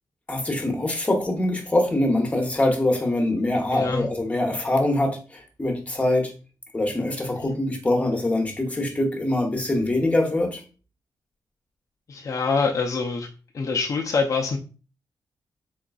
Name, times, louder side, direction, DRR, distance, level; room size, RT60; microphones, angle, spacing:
voice 1, 0.3-6.3 6.7-10.6, left 1 dB, 20° left, 2 dB, 1.0 m, -24 dB
voice 2, 3.7-4.1 7.4-7.5 12.1-13.3 13.5-14.6, left 4 dB, 45° left, 1 dB, 0.5 m, -25 dB
3.8 x 3.7 x 2.3 m, 0.35 s
wide cardioid pair, 105°, 7 cm